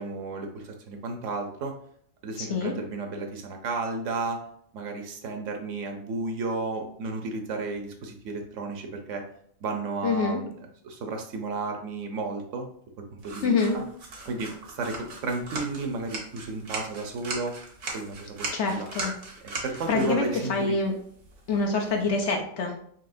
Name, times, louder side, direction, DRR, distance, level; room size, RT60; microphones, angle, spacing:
voice 1, 0.0-1.7 2.2-4.4 4.7-9.2 9.6-10.5 10.8-12.7 13.0-13.8 14.3-17.5 17.9-18.9 19.4-20.8, right 3 dB, 70° right, 3 dB, 1.0 m, -33 dB
voice 2, 2.4-2.7 10.0-10.4 13.4-13.8 18.5-19.1 19.5-20.9 21.5-22.7, left 4 dB, 65° left, 2 dB, 0.9 m, -26 dB
sound 1, 13.2-22.3, right 3 dB, 85° right, 1.5 m, -39 dB
5.6 x 2.9 x 2.6 m, 0.65 s
omnidirectional pair, 1.4 m